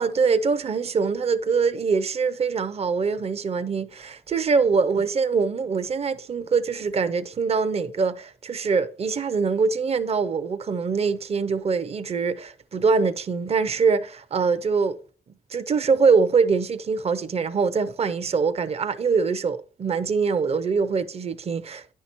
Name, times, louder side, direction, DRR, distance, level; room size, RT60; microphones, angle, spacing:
voice 1, 0.0-15.0 15.5-21.9, right 5 dB, 40° right, 0.6 m, -23 dB
10.0 x 5.7 x 4.5 m
cardioid pair, 115°, 17 cm